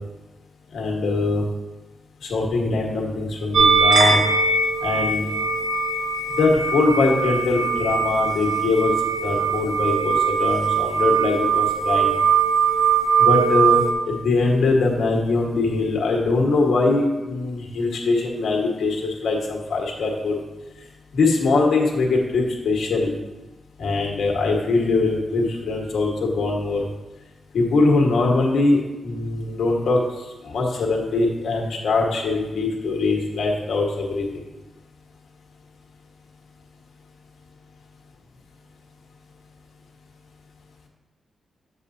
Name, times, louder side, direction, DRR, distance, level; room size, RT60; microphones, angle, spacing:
voice 1, 0.7-1.4 2.2-4.2 4.8-5.3 6.4-8.9 9.2-12.1 13.2-20.4 21.1-23.1 23.8-26.9 27.5-30.0 30.4-34.3, left 3 dB, 80° left, -1 dB, 1.5 m, -22 dB
sound 1, 3.5-13.9, right 5 dB, 60° right, 0.9 m, -21 dB
8.6 x 7.1 x 2.8 m, 1.1 s
wide cardioid pair, 105°, 0 cm